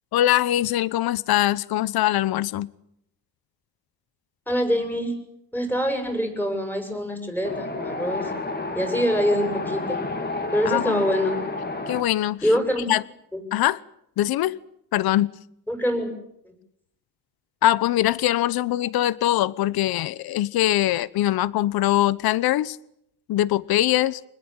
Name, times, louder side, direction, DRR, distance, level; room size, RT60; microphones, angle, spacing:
voice 1, 0.1-2.7 10.7-11.0 11.9-12.4 12.9-13.0 13.5-13.8 14.2-14.6 14.9-15.3 17.6-22.8 23.3-24.2, left 14 dB, 60° left, 1.0 m, -22 dB
voice 2, 4.5-5.2 5.5-8.3 8.7-10.0 10.5-11.4 12.4-12.9 13.3-13.4 15.7-16.1, equal, 5° left, 7.6 m, -24 dB
Wind, 7.4-12.0, left 2 dB, 25° left, 3.8 m, -30 dB
27.0 x 20.5 x 9.0 m
cardioid pair, 125°, 42 cm